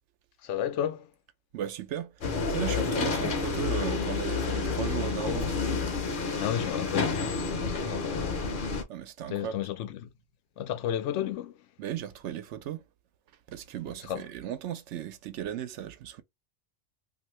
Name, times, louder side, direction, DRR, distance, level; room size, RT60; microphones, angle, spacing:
voice 1, 0.4-1.1 6.3-8.4 9.3-10.1 10.6-11.6 14.0-14.3, left 10 dB, 85° left, 0.9 m, -33 dB
voice 2, 1.5-2.1 2.5-5.6 8.9-9.5 11.8-12.8 13.5-16.2, right 10 dB, 80° right, 0.9 m, -36 dB
sound 1, 2.2-8.8, left 4 dB, 55° left, 0.8 m, -29 dB
2.7 x 2.5 x 3.1 m
omnidirectional pair, 1.2 m